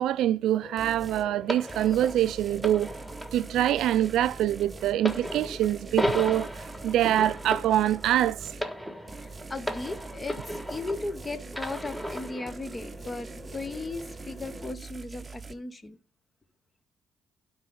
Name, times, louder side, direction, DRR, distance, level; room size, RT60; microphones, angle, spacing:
voice 1, 0.0-2.9 3.3-6.5 6.8-8.5, right 12 dB, 85° right, 0.4 m, -25 dB
sound 1, 0.6-14.8, equal, 5° right, 1.8 m, -47 dB
sound 2, 0.8-1.3 1.7-8.7 9.1-15.5, right 4 dB, 25° right, 0.7 m, -44 dB
sound 3, 1.5-11.1 11.5-12.6 13.3-13.5, equal, 10° left, 1.4 m, -35 dB
voice 2, 9.2-16.0, left 3 dB, 25° left, 1.0 m, -37 dB
11.5 x 4.7 x 3.9 m
cardioid pair, 90°, 0 cm